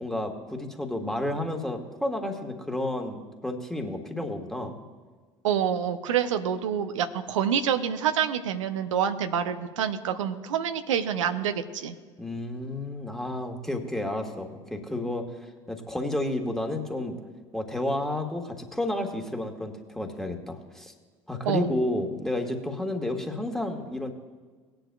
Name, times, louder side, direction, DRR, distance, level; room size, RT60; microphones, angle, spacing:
voice 1, 0.0-4.8 12.2-15.3 15.7-17.2 17.5-20.9 21.3-24.1, left 1 dB, 5° left, 3 dB, 1.6 m, -31 dB
voice 2, 5.4-11.9 21.5-21.7, right 8 dB, 75° right, 7 dB, 0.7 m, -27 dB
18.5 x 10.0 x 2.3 m, 1.4 s
figure-of-eight pair, 70°, 16 cm